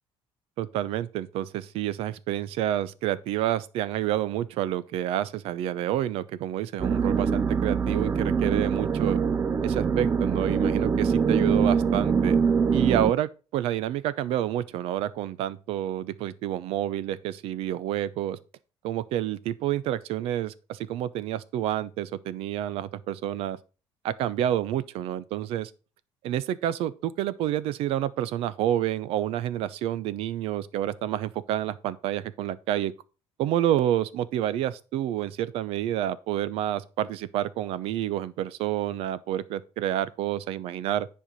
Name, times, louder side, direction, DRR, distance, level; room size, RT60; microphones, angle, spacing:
voice 1, 0.6-9.2 9.6-12.4 12.7-18.4 18.8-23.6 24.0-25.7 26.2-32.9 33.4-41.1, right 12 dB, 70° right, 0.7 m, -29 dB
sound 1, 6.8-13.1, right 6 dB, 20° right, 0.5 m, -24 dB
10.0 x 4.7 x 5.3 m
cardioid pair, 155°, 10 cm